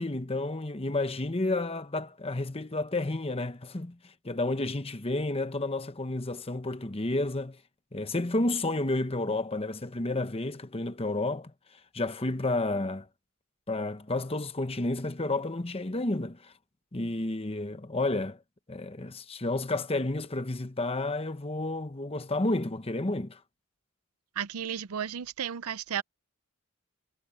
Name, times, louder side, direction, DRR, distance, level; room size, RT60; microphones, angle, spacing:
voice 1, 0.0-4.0 4.2-7.6 7.9-11.5 11.9-13.1 13.7-16.5 16.9-18.4 18.7-23.4, left 2 dB, 25° left, 1.0 m, -31 dB
voice 2, 24.4-26.0, right 8 dB, 90° right, 0.6 m, -33 dB
head